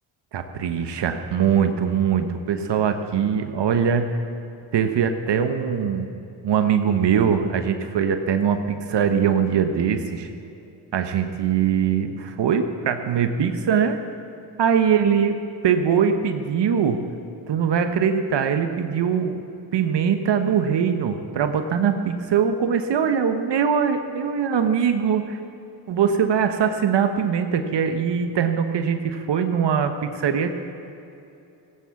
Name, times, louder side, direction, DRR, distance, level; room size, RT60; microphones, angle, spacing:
voice 1, 0.3-4.1 4.7-6.1 6.4-10.3 10.9-14.0 14.6-15.4 15.6-17.0 17.5-19.4 19.7-25.4 25.9-30.6, right 7 dB, 60° right, 7 dB, 1.3 m, -22 dB
16.5 x 9.4 x 7.3 m, 2.7 s
cardioid pair, 75°, 48 cm